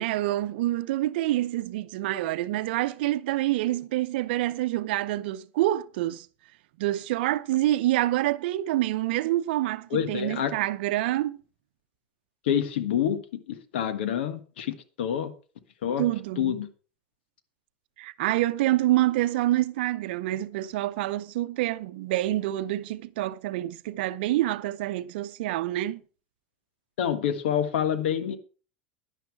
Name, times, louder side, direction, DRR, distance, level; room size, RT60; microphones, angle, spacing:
voice 1, 0.0-6.3 6.8-11.4 16.0-16.6 18.0-26.0, right 15 dB, 70° right, 0.7 m, -27 dB
voice 2, 9.9-10.5 12.4-15.3 15.8-16.1 16.4-16.7 27.0-28.4, left 9 dB, 75° left, 1.5 m, -27 dB
11.0 x 10.5 x 4.7 m
hypercardioid pair, 90°, 6 cm